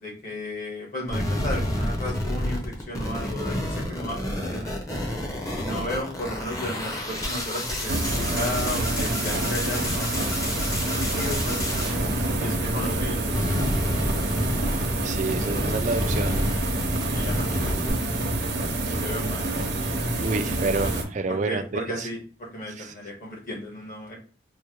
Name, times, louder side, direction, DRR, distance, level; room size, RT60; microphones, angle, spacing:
voice 1, 0.0-4.8 5.5-11.6 12.4-13.8 16.9-19.6 21.3-24.1, left 1 dB, 50° left, 1.4 m, -35 dB
sound 1, 1.1-13.0 13.3-17.9, left 1 dB, 20° left, 0.7 m, -29 dB
sound 2, 7.8-21.0, right 2 dB, 65° right, 0.8 m, -27 dB
voice 2, 15.0-16.5 18.8-19.0 20.2-22.1 22.8-22.9, right 3 dB, 40° right, 0.4 m, -29 dB
4.4 x 2.2 x 3.0 m
head